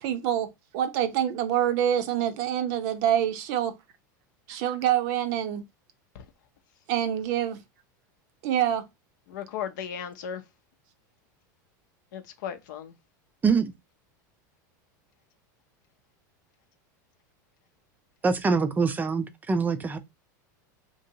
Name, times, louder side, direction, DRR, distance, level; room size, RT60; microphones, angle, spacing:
voice 1, 0.0-0.5 0.7-3.7 4.5-5.6 6.9-7.6 8.4-8.8, right 10 dB, 60° right, 0.6 m, -26 dB
voice 2, 9.3-10.4 12.1-12.9, left 8 dB, 75° left, 0.6 m, -35 dB
voice 3, 18.2-20.0, right 5 dB, 15° right, 0.4 m, -24 dB
2.9 x 2.7 x 2.7 m
supercardioid pair, 115°, 10 cm